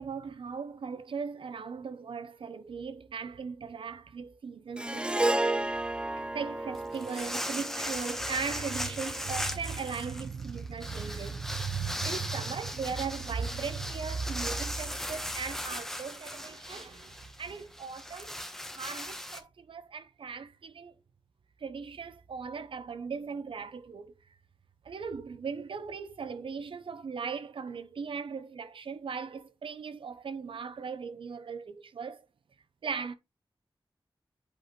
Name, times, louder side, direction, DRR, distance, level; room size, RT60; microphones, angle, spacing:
voice 1, 0.0-5.6 6.3-18.3 18.7-20.9 21.6-24.1 24.8-32.3 32.8-33.1, right 5 dB, 85° right, 0.6 m, -38 dB
Harp, 4.8-9.2, right 2 dB, 10° right, 0.4 m, -32 dB
sound 1, 6.7-19.4, equal, 5° left, 1.0 m, -38 dB
8.1 x 4.0 x 3.1 m
wide cardioid pair, 90°, 9 cm